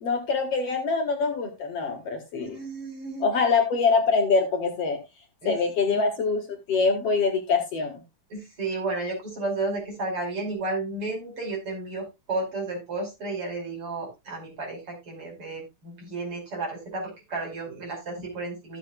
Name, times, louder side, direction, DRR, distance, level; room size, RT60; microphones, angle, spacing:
voice 1, 0.0-2.6 3.2-5.0 5.4-8.0, left 4 dB, 55° left, 3 dB, 2.7 m, -24 dB
voice 2, 2.4-3.3 5.4-5.5 5.9-6.1 8.3-18.8, right 2 dB, 45° right, 0 dB, 6.2 m, -32 dB
15.0 x 8.2 x 2.4 m, 0.24 s
omnidirectional pair, 3.5 m